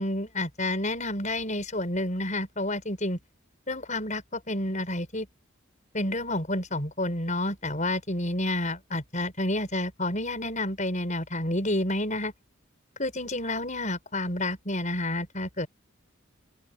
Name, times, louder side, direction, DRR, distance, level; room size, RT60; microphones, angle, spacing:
voice 1, 0.0-3.2 3.7-5.3 5.9-12.3 13.0-15.7, left 1 dB, 35° left, 6.5 m, -29 dB
open air
head